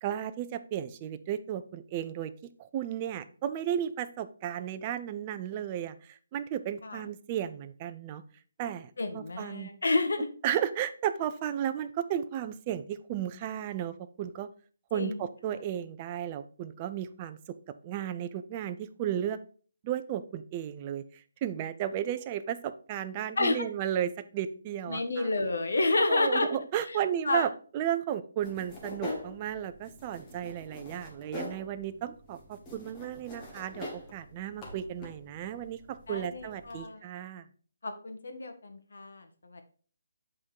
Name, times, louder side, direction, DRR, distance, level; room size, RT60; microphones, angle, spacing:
voice 1, 0.0-2.3 2.6-8.2 8.6-9.7 10.4-14.5 14.9-17.4 17.8-19.4 19.8-21.0 21.4-25.3 26.1-35.8 36.1-37.5, right 10 dB, 25° right, 10 dB, 0.4 m, -34 dB
voice 2, 9.0-10.3 14.9-15.2 23.4-23.6 24.9-26.5 26.8-27.0 27.2-27.5 36.1-37.0 37.8-39.6, left 2 dB, 75° left, 7 dB, 1.3 m, -30 dB
sound 1, 28.4-36.8, left 2 dB, 15° left, 1.3 m, -44 dB
7.6 x 3.7 x 4.6 m, 0.42 s
hypercardioid pair, 165°, 0 cm